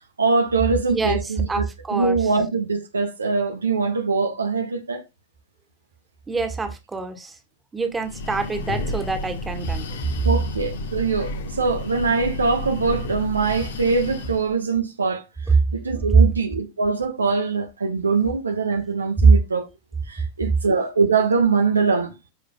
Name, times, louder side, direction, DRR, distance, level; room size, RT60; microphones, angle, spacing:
voice 1, 0.2-1.6 1.9-5.0 10.2-15.2 15.7-19.7 20.1-22.1, right 4 dB, 75° right, 1.0 m, -22 dB
voice 2, 0.9-1.2 1.5-2.2 6.3-7.3 7.7-10.0, right 4 dB, 15° right, 1.8 m, -27 dB
Breathing, 7.9-14.6, left 2 dB, 60° left, 1.2 m, -31 dB
13.5 x 5.0 x 2.3 m
figure-of-eight pair, 90°, 0 cm